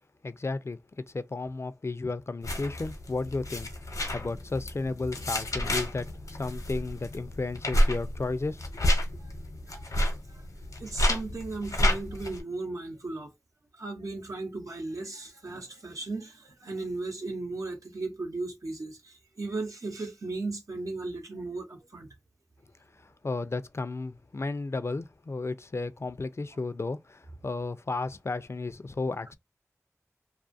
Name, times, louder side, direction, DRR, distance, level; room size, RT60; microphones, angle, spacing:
voice 1, 0.2-8.6 22.9-29.3, left 3 dB, 55° left, 0.4 m, -33 dB
sound 1, 2.4-12.4, equal, 85° left, 0.9 m, -30 dB
voice 2, 10.8-13.3 13.7-22.1, right 3 dB, 80° right, 0.8 m, -36 dB
2.5 x 2.4 x 2.5 m
wide cardioid pair, 40°, 6 cm